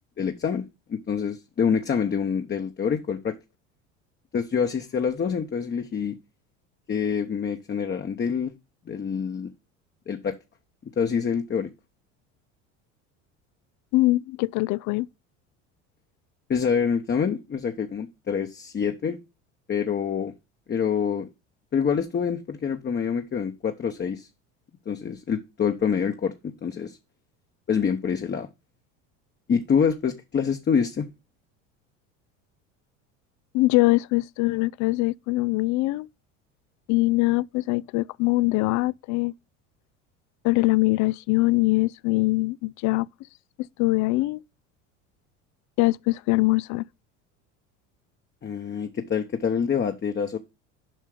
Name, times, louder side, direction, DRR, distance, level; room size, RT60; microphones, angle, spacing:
voice 1, 0.2-0.6 0.9-3.3 4.3-6.2 6.9-8.5 8.9-9.5 10.1-10.4 11.0-11.7 16.5-19.2 19.7-20.3 20.7-21.3 21.7-24.3 24.9-27.0 27.7-28.5 29.5-31.1 48.4-50.4, left 7 dB, 30° left, 1.0 m, -26 dB
voice 2, 13.9-15.1 33.5-36.1 36.9-39.3 40.4-43.1 43.8-44.4 45.8-46.8, left 21 dB, 50° left, 0.4 m, -22 dB
7.6 x 5.5 x 4.9 m
hypercardioid pair, 80°, 37 cm